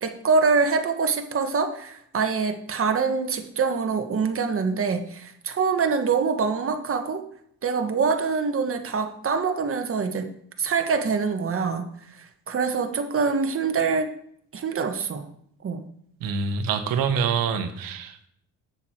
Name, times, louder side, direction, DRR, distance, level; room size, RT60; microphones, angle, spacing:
voice 1, 0.0-7.2 7.6-10.3 10.6-11.9 12.5-14.1 14.5-15.3 15.6-15.8, right 5 dB, 40° right, 6 dB, 1.4 m, -24 dB
voice 2, 16.2-18.3, right 6 dB, 75° right, 8 dB, 1.3 m, -26 dB
8.3 x 7.0 x 4.5 m, 0.68 s
supercardioid pair, 80°, 34 cm